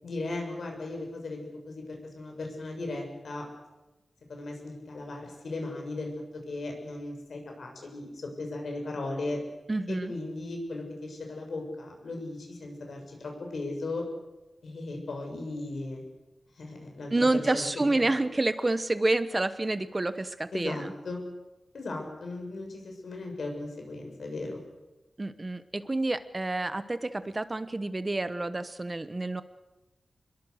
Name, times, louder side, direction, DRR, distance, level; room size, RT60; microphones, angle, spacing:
voice 1, 0.0-3.5 4.3-9.4 9.9-14.0 14.6-16.0 16.6-17.1 17.5-17.7 18.0-18.2 20.5-21.2 21.7-24.6, left 2 dB, 75° left, 2 dB, 6.5 m, -37 dB
voice 2, 9.7-10.1 17.1-20.9 25.2-29.4, right 2 dB, 25° right, 12 dB, 1.0 m, -28 dB
27.0 x 22.5 x 6.5 m, 1.0 s
wide cardioid pair, 125°, 0 cm